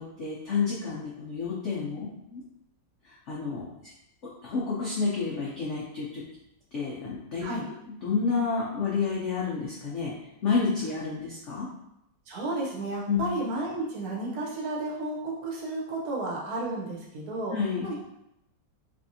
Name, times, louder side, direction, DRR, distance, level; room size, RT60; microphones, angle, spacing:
voice 1, 0.0-2.4 3.0-3.9 4.4-6.2 6.7-7.5 8.0-10.1 10.4-11.7 13.1-13.2 17.5-17.9, left 5 dB, 70° left, -6 dB, 0.7 m, -30 dB
voice 2, 12.3-17.5 17.8-17.9, right 2 dB, 60° right, -3 dB, 1.2 m, -32 dB
3.5 x 3.2 x 2.6 m, 0.83 s
omnidirectional pair, 2.0 m